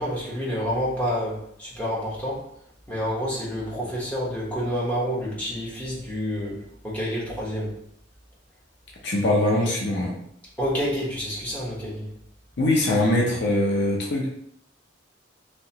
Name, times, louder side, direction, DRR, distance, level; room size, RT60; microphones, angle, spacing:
voice 1, 0.0-2.4 2.9-7.7 10.6-12.1, equal, 10° left, -7 dB, 0.9 m, -28 dB
voice 2, 9.0-10.2 12.6-14.3, left 1 dB, 65° left, -2 dB, 0.5 m, -22 dB
2.8 x 2.1 x 2.7 m, 0.69 s
head